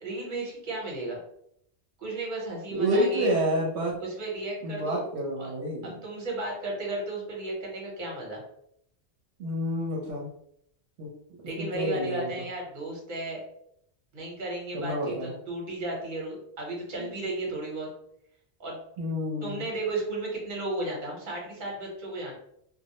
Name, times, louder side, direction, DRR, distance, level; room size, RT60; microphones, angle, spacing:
voice 1, 0.0-1.2 2.0-3.3 4.0-5.0 5.4-5.5 5.8-8.4 11.4-13.4 14.1-17.9 18.6-18.8 19.4-22.3, right 2 dB, 50° right, -2 dB, 1.0 m, -34 dB
voice 2, 2.7-4.0 4.6-5.9 9.4-10.3 11.0-11.1 11.6-12.4 14.7-15.4 17.0-17.1 19.0-19.7, equal, 80° right, -3 dB, 0.8 m, -29 dB
2.2 x 2.0 x 2.8 m, 0.71 s
omnidirectional pair, 1.1 m